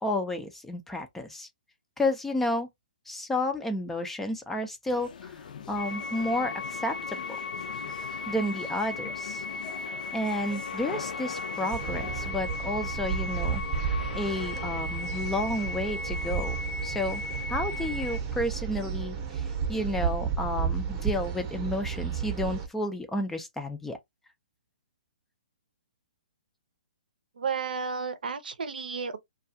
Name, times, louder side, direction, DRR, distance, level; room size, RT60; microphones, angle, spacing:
voice 1, 0.0-1.5 2.0-2.7 3.1-5.3 5.7-7.4 8.3-9.4 9.8-9.9 10.1-16.6 16.8-17.2 17.5-24.0, left 1 dB, 5° left, 0.3 m, -31 dB
sound 1, 4.9-12.3, left 7 dB, 65° left, 0.5 m, -42 dB
sound 2, 5.8-18.2, left 3 dB, 90° left, 0.8 m, -36 dB
sound 3, 11.7-22.7, right 7 dB, 25° right, 0.7 m, -32 dB
voice 2, 27.4-29.2, right 5 dB, 80° right, 0.6 m, -32 dB
2.3 x 2.3 x 2.6 m
hypercardioid pair, 150°, 5 cm